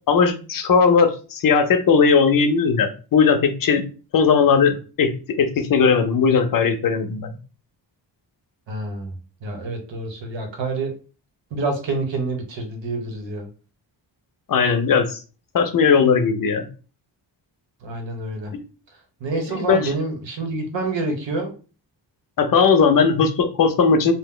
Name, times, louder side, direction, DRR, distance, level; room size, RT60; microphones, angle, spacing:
voice 1, 0.1-3.8 4.1-7.4 14.5-15.2 15.5-16.7 18.5-18.6 19.3-19.9 22.4-24.1, left 5 dB, 50° left, 7 dB, 0.5 m, -18 dB
voice 2, 8.7-9.1 9.4-10.9 11.5-13.5 17.8-18.5 19.2-21.5, right 3 dB, 80° right, 4 dB, 0.9 m, -27 dB
2.7 x 2.1 x 3.6 m, 0.36 s
wide cardioid pair, 175°, 44 cm